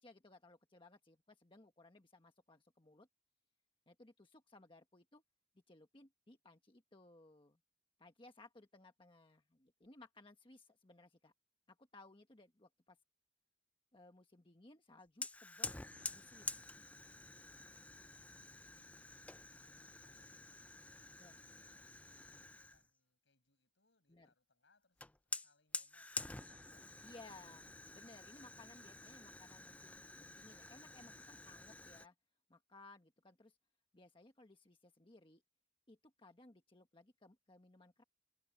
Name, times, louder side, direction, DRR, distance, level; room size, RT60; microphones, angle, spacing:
voice 1, 0.0-3.1 3.9-5.2 5.7-7.6 8.0-11.3 11.7-13.0 13.9-15.8 16.1-16.6 21.2-21.3 24.1-24.3 27.0-27.6 27.9-32.1 32.5-33.6 33.9-35.4 35.9-38.0, left 2 dB, 25° left, 1.3 m, -61 dB
Fire, 15.2-22.9 25.0-32.1, left 3 dB, 5° left, 0.4 m, -49 dB
voice 2, 18.5-20.7 21.0-22.0 22.4-27.8, left 3 dB, 65° left, 6.9 m, -77 dB
head